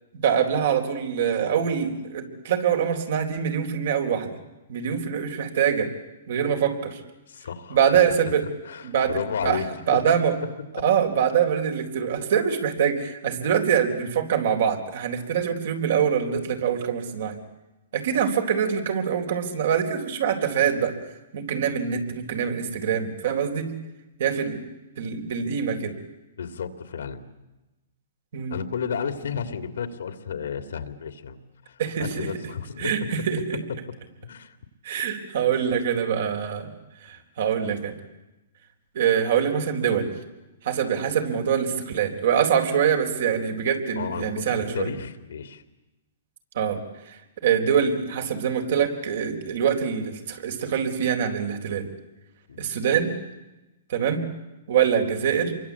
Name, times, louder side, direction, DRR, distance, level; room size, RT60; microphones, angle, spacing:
voice 1, 0.1-4.3 4.7-5.9 6.3-7.0 7.7-8.5 8.8-9.6 9.9-10.4 10.8-17.4 17.9-21.0 21.3-23.7 24.2-24.6 25.0-25.9 28.3-28.6 31.8-32.3 32.8-33.6 34.8-36.7 37.0-38.0 38.9-40.1 40.6-44.9 46.5-46.8 47.1-51.9 52.6-53.1 53.9-54.2 54.7-55.5, right 8 dB, 65° right, 5 dB, 4.1 m, -24 dB
voice 2, 7.3-7.8 8.6-9.7 9.9-10.0 26.4-27.2 28.5-31.4 31.7-32.9 34.2-34.6 35.5-35.7 44.0-45.6 52.5-52.7, left 6 dB, 80° left, 9 dB, 2.5 m, -32 dB
27.5 x 23.5 x 8.4 m, 1.0 s
hypercardioid pair, 145°, 0 cm